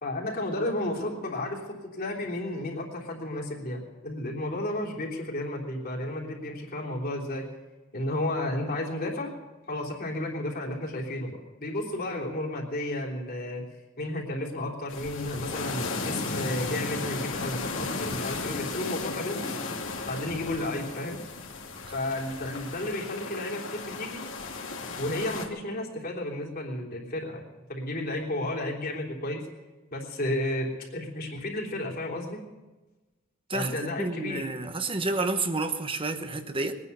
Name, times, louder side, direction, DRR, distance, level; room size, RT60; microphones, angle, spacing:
voice 1, 0.0-1.6 1.9-7.4 7.9-9.3 9.7-13.6 14.0-19.6 20.0-21.2 21.9-24.2 25.0-27.4 27.7-29.4 29.9-32.4 33.5-34.4, left 1 dB, 50° left, -1 dB, 3.3 m, -32 dB
sound 1, 14.9-25.5, left 3 dB, 75° left, 2.4 m, -35 dB
voice 2, 33.5-36.7, right 3 dB, 25° right, 8 dB, 1.1 m, -30 dB
21.5 x 9.8 x 6.8 m, 1.2 s
head